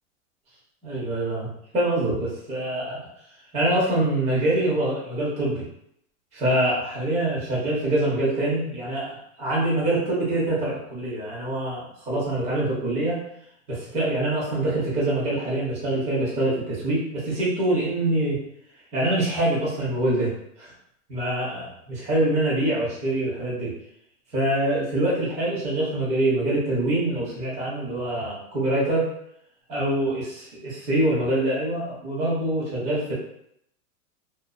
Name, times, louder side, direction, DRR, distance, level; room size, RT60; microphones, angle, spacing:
voice 1, 0.8-1.5 1.7-3.0 3.5-5.7 6.3-9.1 9.4-13.2 13.7-18.4 18.9-20.7 21.1-23.7 24.3-29.1 29.7-30.2 30.5-33.1, right 1 dB, 15° right, -6 dB, 0.7 m, -25 dB
2.6 x 2.1 x 2.3 m, 0.74 s
supercardioid pair, 150°, 42 cm